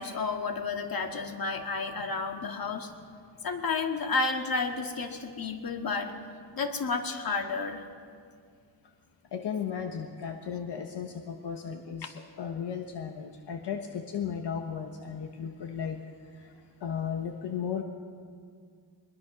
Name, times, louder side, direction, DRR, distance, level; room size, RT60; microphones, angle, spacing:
voice 1, 0.0-2.9 3.4-6.1 6.5-7.8, left 4 dB, 55° left, 4 dB, 2.1 m, -31 dB
voice 2, 9.3-16.0 16.4-16.5 16.8-17.8, left 7 dB, 75° left, 4 dB, 1.4 m, -35 dB
23.0 x 21.5 x 6.1 m, 2.1 s
wide cardioid pair, 115°, 41 cm